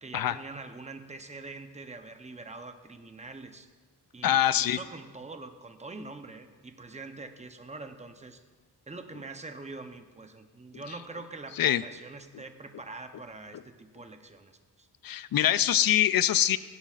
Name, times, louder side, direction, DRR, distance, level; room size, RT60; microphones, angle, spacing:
voice 1, 0.0-3.7 4.1-8.4 8.9-14.9, right 3 dB, 15° right, 7 dB, 0.7 m, -44 dB
voice 2, 4.2-4.8 11.6-11.8 15.0-16.6, left 11 dB, 60° left, 15 dB, 0.5 m, -24 dB
18.0 x 15.5 x 2.5 m, 1.4 s
wide cardioid pair, 155°, 40 cm